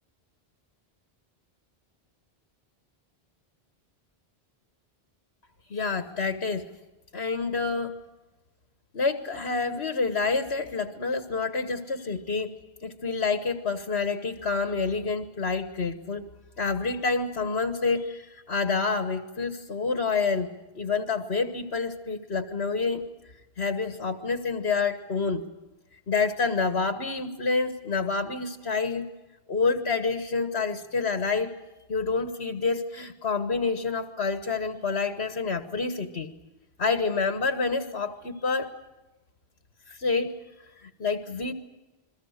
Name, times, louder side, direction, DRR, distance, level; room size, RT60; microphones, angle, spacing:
voice 1, 5.7-6.7 7.1-7.9 8.9-16.3 16.6-23.0 23.6-25.4 26.1-29.0 29.5-31.5 31.9-36.3 36.8-38.7 39.9-40.4 40.8-41.5, left 4 dB, 75° left, 8 dB, 1.7 m, -28 dB
29.0 x 22.5 x 6.6 m, 1.1 s
omnidirectional pair, 1.1 m